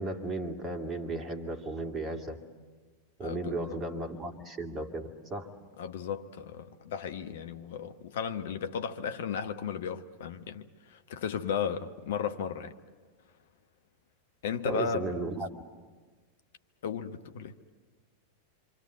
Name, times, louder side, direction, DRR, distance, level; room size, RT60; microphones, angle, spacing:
voice 1, 0.0-2.4 3.2-5.5 14.6-15.5, right 2 dB, 20° right, 2.4 m, -35 dB
voice 2, 3.2-3.8 5.8-12.7 14.4-15.2 16.8-17.5, left 7 dB, 55° left, 1.1 m, -35 dB
26.5 x 25.5 x 8.3 m
figure-of-eight pair, 90°, 0 cm